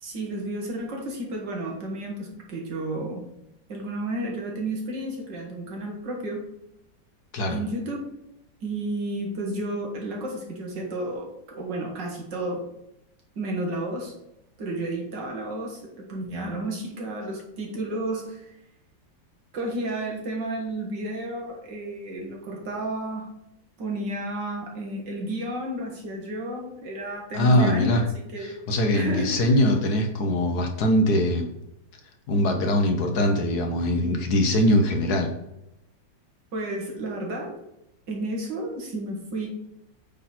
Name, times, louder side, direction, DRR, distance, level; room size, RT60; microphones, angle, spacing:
voice 1, 0.0-3.2 3.7-6.4 7.5-8.0 8.6-12.6 13.4-14.1 14.6-18.5 19.5-23.3 23.8-28.0 28.3-28.6 28.9-29.6 36.5-37.5 38.1-39.5, right 1 dB, 65° right, 0 dB, 2.2 m, -32 dB
voice 2, 27.3-28.0 28.4-31.5 32.3-35.3, left 1 dB, 60° left, 4 dB, 1.4 m, -22 dB
8.7 x 4.1 x 4.3 m, 0.85 s
omnidirectional pair, 2.1 m